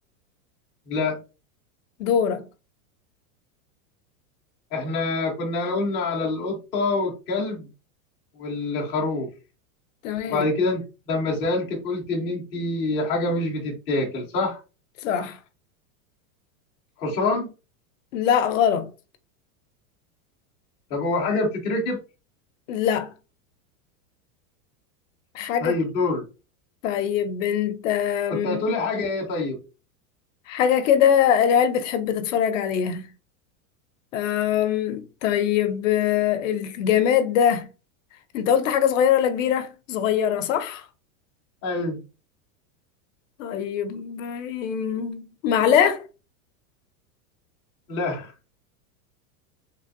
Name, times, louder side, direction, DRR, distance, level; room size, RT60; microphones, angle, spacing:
voice 1, 0.9-1.2 4.7-7.7 8.4-9.3 10.3-14.6 17.0-17.5 20.9-22.0 25.6-26.2 28.3-29.6 41.6-42.0 47.9-48.3, left 3 dB, 15° left, 0.4 m, -26 dB
voice 2, 2.0-2.4 10.0-10.5 15.0-15.4 18.1-18.9 22.7-23.1 25.3-25.7 26.8-28.6 30.5-33.1 34.1-37.7 38.3-40.8 43.4-46.0, left 9 dB, 60° left, 0.6 m, -22 dB
3.3 x 2.5 x 2.5 m
supercardioid pair, 160°, 44 cm